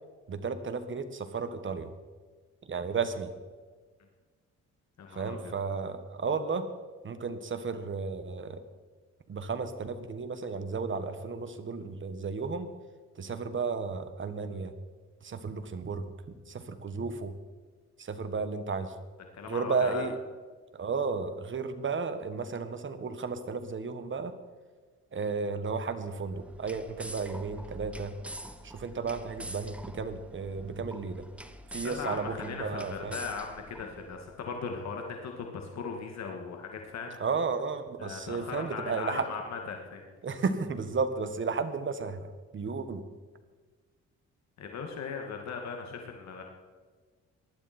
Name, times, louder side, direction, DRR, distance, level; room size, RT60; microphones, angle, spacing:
voice 1, 0.3-1.9 2.7-3.3 5.1-6.6 7.0-8.6 9.3-12.7 13.2-14.7 15.2-17.3 18.0-18.9 19.5-20.2 20.7-24.3 25.1-28.1 28.6-31.3 31.7-33.2 37.2-39.3 40.2-42.3 42.5-43.0, right 4 dB, 40° right, 9 dB, 1.7 m, -33 dB
voice 2, 5.0-5.5 19.3-20.1 31.8-37.2 38.0-40.0 44.6-46.4, left 5 dB, 60° left, 2 dB, 2.1 m, -38 dB
sound 1, 26.2-34.3, equal, 5° right, 1.2 m, -45 dB
19.0 x 12.0 x 4.4 m, 1.4 s
cardioid pair, 90°, 30 cm